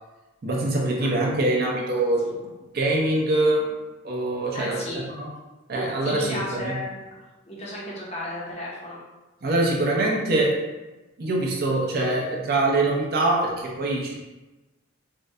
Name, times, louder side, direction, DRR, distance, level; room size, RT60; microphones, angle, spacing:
voice 1, 0.4-2.3 2.7-3.7 4.0-5.3 5.7-6.7 9.4-10.5 11.2-14.1, right 2 dB, 50° right, -2 dB, 0.5 m, -24 dB
voice 2, 4.5-5.0 6.0-7.0 7.5-9.0, left 1 dB, 30° left, -4 dB, 0.6 m, -33 dB
3.6 x 2.1 x 2.6 m, 1.1 s
head